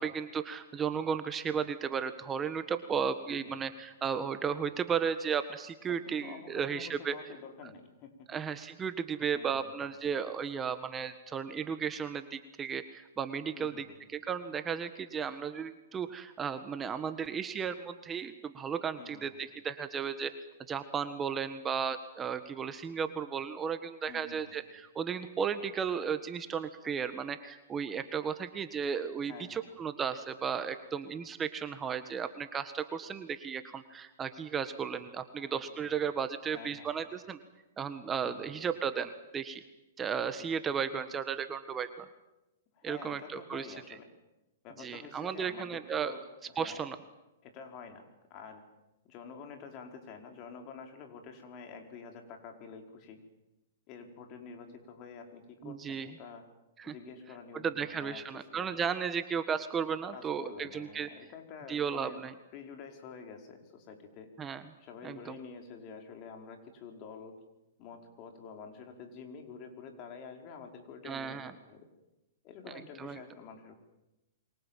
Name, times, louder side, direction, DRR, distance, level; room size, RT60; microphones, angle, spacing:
voice 1, 0.0-7.1 8.3-13.8 14.1-20.3 20.7-37.4 37.8-39.6 40.0-42.1 42.8-43.7 44.8-46.1 46.5-47.0 55.6-56.1 56.8-56.9 57.6-61.1 61.7-62.3 64.4-64.6 65.0-65.3 71.0-71.5 73.0-73.2, right 7 dB, 20° right, 10 dB, 1.5 m, -34 dB
voice 2, 3.3-3.7 5.9-8.1 9.3-9.9 13.5-13.9 19.0-19.4 24.1-24.6 29.2-29.7 35.4-36.0 36.5-36.9 38.2-38.5 42.7-44.1 44.6-46.8 47.4-48.0 48.3-48.6 49.0-53.2 53.9-56.4 56.8-58.8 60.1-62.2 62.5-64.3 64.8-67.3 67.8-71.4 71.7-71.9 72.4-73.7, left 5 dB, 40° left, 4 dB, 5.1 m, -48 dB
28.5 x 24.0 x 7.5 m, 1.0 s
hypercardioid pair, 125°, 0 cm